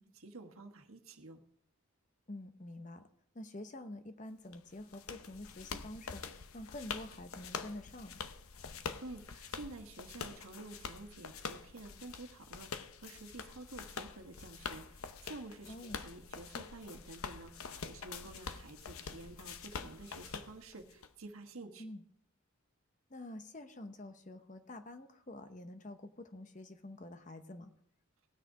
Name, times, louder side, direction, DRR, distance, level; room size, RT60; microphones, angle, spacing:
voice 1, 0.1-1.4 8.7-21.8, right 2 dB, 75° right, 4 dB, 1.3 m, -50 dB
voice 2, 2.3-3.1 3.3-8.3 15.7-16.0 21.8-22.0 23.1-27.7, left 1 dB, 35° left, 9 dB, 0.8 m, -47 dB
sound 1, 4.5-21.1, left 5 dB, 80° left, 0.7 m, -46 dB
18.0 x 6.5 x 4.8 m, 0.65 s
head